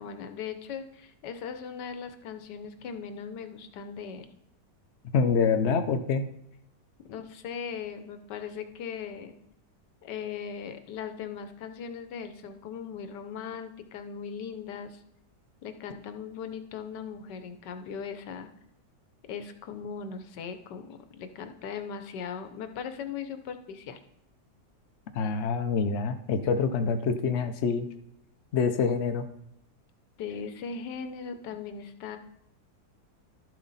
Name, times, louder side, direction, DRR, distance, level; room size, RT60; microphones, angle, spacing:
voice 1, 0.0-4.3 7.1-9.3 10.0-15.0 15.6-18.5 19.3-24.0 30.2-32.2, left 6 dB, 90° left, 8 dB, 1.4 m, -39 dB
voice 2, 5.1-6.3 25.1-27.9 28.5-29.2, left 5 dB, 55° left, 7 dB, 0.9 m, -26 dB
12.0 x 7.5 x 4.1 m, 0.80 s
omnidirectional pair, 1.8 m